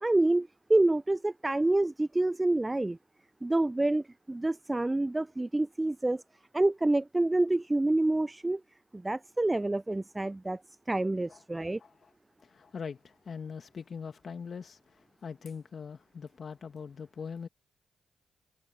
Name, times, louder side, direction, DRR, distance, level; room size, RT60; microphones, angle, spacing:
voice 1, 0.0-3.0 3.4-6.2 6.5-8.6 8.9-10.6 10.9-11.8, right 2 dB, 20° right, 0.5 m, -27 dB
voice 2, 11.8-12.1 12.4-17.5, left 6 dB, 55° left, 1.9 m, -42 dB
hypercardioid pair, 40°, 0 cm